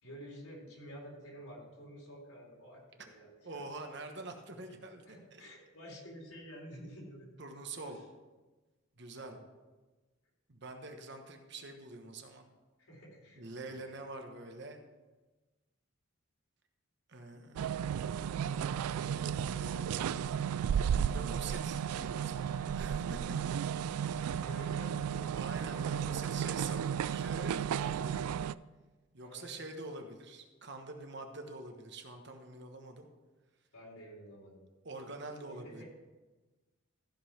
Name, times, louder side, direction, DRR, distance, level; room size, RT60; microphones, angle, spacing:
voice 1, 0.0-3.6 5.0-7.3 7.8-8.0 9.1-9.4 12.8-13.8 24.3-25.5 29.2-29.6 33.7-34.6 35.5-35.8, equal, 80° left, -2 dB, 3.7 m, -50 dB
voice 2, 3.4-5.5 7.4-8.0 9.0-9.4 10.5-12.5 13.3-14.8 17.1-17.9 19.0-20.5 21.0-23.2 23.9-24.4 25.3-28.2 29.1-33.1 34.8-35.8, right 2 dB, 50° right, 4 dB, 1.2 m, -46 dB
sound 1, 17.6-28.5, right 8 dB, 90° right, 0.3 m, -34 dB
14.5 x 5.5 x 5.7 m, 1.2 s
head